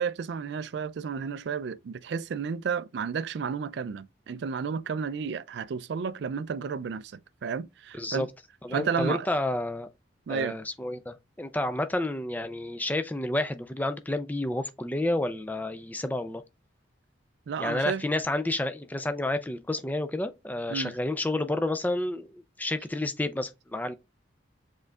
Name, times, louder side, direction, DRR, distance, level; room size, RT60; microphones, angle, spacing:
voice 1, 0.0-8.3 8.7-9.3 10.3-10.6 17.5-18.0 20.7-20.9, right 6 dB, 60° right, 0.3 m, -32 dB
voice 2, 7.9-8.3 8.6-9.9 10.3-16.4 17.6-23.9, left 1 dB, 10° left, 0.4 m, -30 dB
5.3 x 3.8 x 2.3 m
head